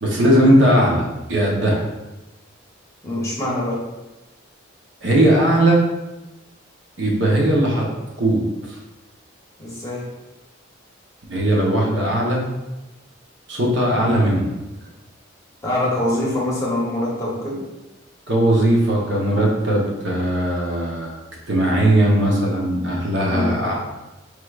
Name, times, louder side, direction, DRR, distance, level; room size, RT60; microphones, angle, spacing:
voice 1, 0.0-1.8 5.0-5.8 7.0-7.9 8.2-8.8 11.3-12.4 13.5-14.4 18.3-21.2 21.5-23.7, right 1 dB, 65° right, -3 dB, 0.9 m, -18 dB
voice 2, 3.0-3.8 9.6-10.1 13.9-14.2 15.6-17.6 23.3-23.6, left 1 dB, 15° left, -6 dB, 0.8 m, -24 dB
4.7 x 3.2 x 2.4 m, 1.1 s
head